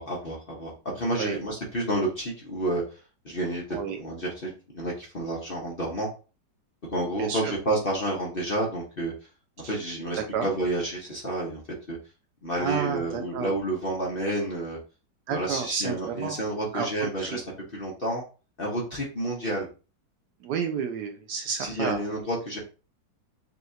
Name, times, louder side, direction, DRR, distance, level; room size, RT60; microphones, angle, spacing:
voice 1, 0.0-2.8 3.2-6.1 6.9-9.1 9.7-11.6 11.9-12.0 12.4-14.8 15.3-17.4 17.7-18.2 18.6-19.7 21.6-22.6, right 1 dB, 40° left, -3 dB, 0.9 m, -30 dB
voice 2, 7.2-7.5 9.6-9.7 10.2-10.5 12.6-13.5 15.3-16.4 16.7-16.9 17.2-17.4 20.4-22.0, right 7 dB, 70° right, 5 dB, 1.0 m, -31 dB
5.5 x 2.5 x 2.8 m, 0.34 s
omnidirectional pair, 2.0 m